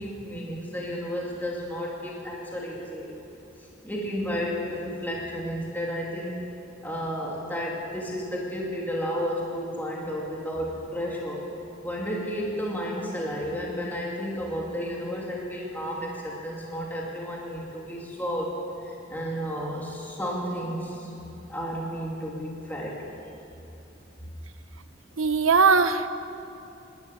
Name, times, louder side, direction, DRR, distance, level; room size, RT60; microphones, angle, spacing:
voice 1, 0.0-3.1 3.6-6.4 6.8-11.5 11.8-18.5 18.8-21.1 21.5-23.1, equal, 10° left, -3 dB, 2.7 m, -32 dB
voice 2, 25.2-26.1, right 5 dB, 90° right, 10 dB, 1.1 m, -20 dB
26.0 x 12.5 x 9.8 m, 2.9 s
head